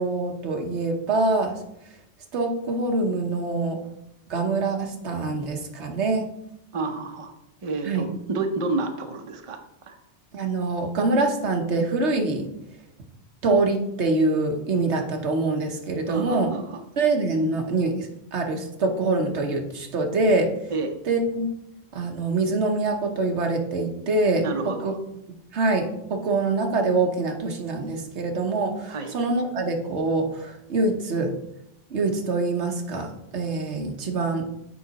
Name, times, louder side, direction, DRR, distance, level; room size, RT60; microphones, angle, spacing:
voice 1, 0.0-1.6 2.3-3.8 4.3-6.3 7.8-8.1 10.3-12.5 13.4-16.5 17.0-20.5 21.0-21.5 21.9-24.9 25.5-31.3 31.9-34.5, right 3 dB, 90° right, 3 dB, 1.3 m, -25 dB
voice 2, 6.7-7.3 7.6-9.6 9.9-10.0 16.1-16.8 20.7-20.9 24.4-25.0 28.9-29.1, right 3 dB, 35° right, 5 dB, 0.7 m, -29 dB
7.6 x 5.1 x 4.0 m, 0.83 s
omnidirectional pair, 1.1 m